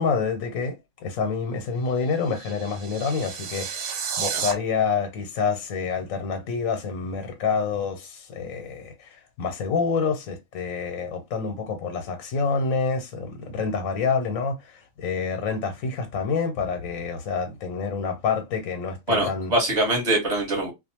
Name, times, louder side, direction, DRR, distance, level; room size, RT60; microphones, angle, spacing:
voice 1, 0.0-19.5, left 5 dB, 90° left, 1.1 m, -27 dB
sound 1, 1.8-4.5, right 7 dB, 70° right, 0.9 m, -32 dB
voice 2, 19.1-20.7, right 1 dB, 25° right, 1.1 m, -23 dB
2.4 x 2.2 x 2.8 m
omnidirectional pair, 1.4 m